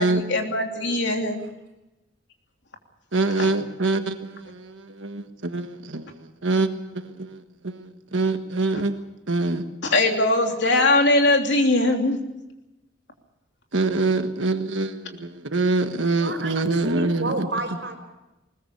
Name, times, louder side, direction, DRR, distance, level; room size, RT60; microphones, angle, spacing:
voice 1, 0.0-1.4 3.4-3.5 9.8-12.3, left 2 dB, 65° left, 3 dB, 3.1 m, -21 dB
voice 2, 3.1-6.1 6.4-6.7 6.9-7.3 7.6-7.8 8.1-9.0 9.3-9.6 13.7-17.5, right 3 dB, 75° right, 7 dB, 1.4 m, -24 dB
voice 3, 16.0-18.0, right 2 dB, 60° right, 4 dB, 5.2 m, -31 dB
21.0 x 20.0 x 6.9 m, 0.97 s
head